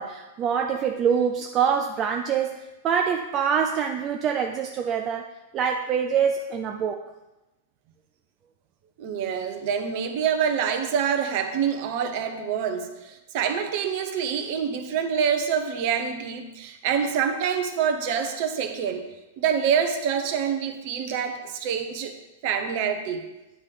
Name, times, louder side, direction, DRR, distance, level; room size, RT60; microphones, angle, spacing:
voice 1, 0.0-5.3 5.5-7.0, right 7 dB, 35° right, 4 dB, 0.4 m, -25 dB
voice 2, 9.0-19.1 19.4-22.1 22.4-23.3, right 7 dB, 50° right, 7 dB, 0.9 m, -26 dB
9.3 x 3.2 x 5.9 m, 1.0 s
figure-of-eight pair, 100°, 0 cm